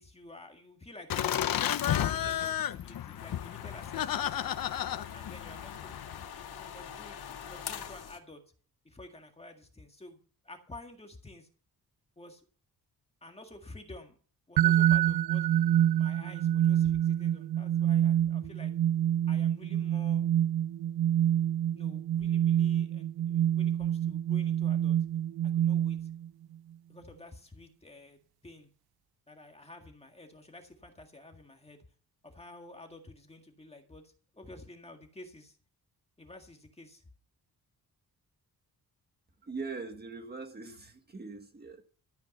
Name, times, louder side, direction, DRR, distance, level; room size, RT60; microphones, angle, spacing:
voice 1, 0.0-1.4 2.0-4.6 5.1-8.4 8.8-11.5 12.2-12.4 13.2-14.2 14.5-15.5 16.0-18.7 19.3-20.3 21.7-25.0 25.4-26.1 26.9-28.7 29.3-31.9 32.2-35.6 36.2-37.0, left 2 dB, 15° left, 4 dB, 1.8 m, -51 dB
Laughter, 1.1-6.3, left 11 dB, 65° left, 0.8 m, -32 dB
sound 1, 3.2-8.2, left 8 dB, 90° left, 1.9 m, -44 dB
sound 2, 14.6-26.3, right 11 dB, 80° right, 0.6 m, -27 dB
voice 2, 39.4-41.8, right 4 dB, 25° right, 5 dB, 1.7 m, -41 dB
13.0 x 9.1 x 5.3 m, 0.41 s
wide cardioid pair, 160°, 37 cm